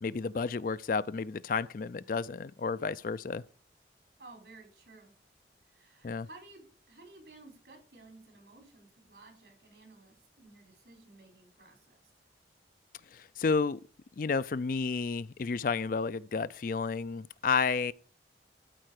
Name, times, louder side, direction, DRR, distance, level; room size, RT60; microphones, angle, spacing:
voice 1, 0.0-3.4 6.0-6.3 13.1-13.8 14.2-17.9, left 5 dB, 50° left, 0.4 m, -31 dB
voice 2, 4.2-5.1 5.7-12.1, right 2 dB, 75° right, 4.4 m, -55 dB
13.0 x 4.6 x 6.5 m
head